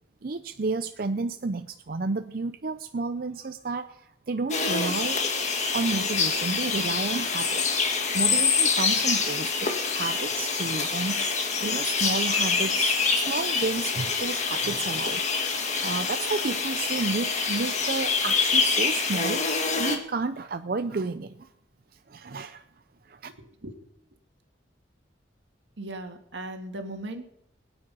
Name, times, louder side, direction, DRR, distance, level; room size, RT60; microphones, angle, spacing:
voice 1, 0.2-5.3 5.7-7.7 8.1-15.4 15.8-21.5 22.1-22.6 23.0-23.3, right 3 dB, 50° right, 9 dB, 0.5 m, -31 dB
sound 1, 4.5-20.0, left 5 dB, 40° left, 1.8 m, -26 dB
voice 2, 25.8-27.3, right 1 dB, 80° right, 5 dB, 1.9 m, -37 dB
21.5 x 9.4 x 5.5 m, 0.81 s
head